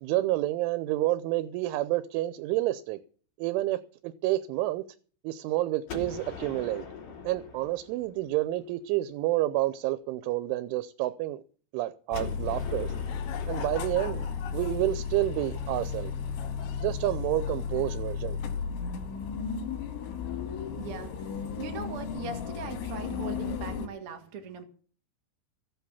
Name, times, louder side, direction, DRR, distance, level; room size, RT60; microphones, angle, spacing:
voice 1, 0.0-3.0 3.4-4.8 5.2-6.9 7.2-11.4 11.7-12.9 13.5-16.1 16.8-18.4, right 16 dB, 90° right, 3.2 m, -29 dB
Gunshot gunfire, 5.9-8.7 12.1-16.0, left 5 dB, 45° left, 4.3 m, -43 dB
sound 1, 12.1-23.9, left 6 dB, 85° left, 3.9 m, -34 dB
voice 2, 20.5-24.6, right 5 dB, 50° right, 1.8 m, -40 dB
15.5 x 8.1 x 7.1 m
omnidirectional pair, 5.4 m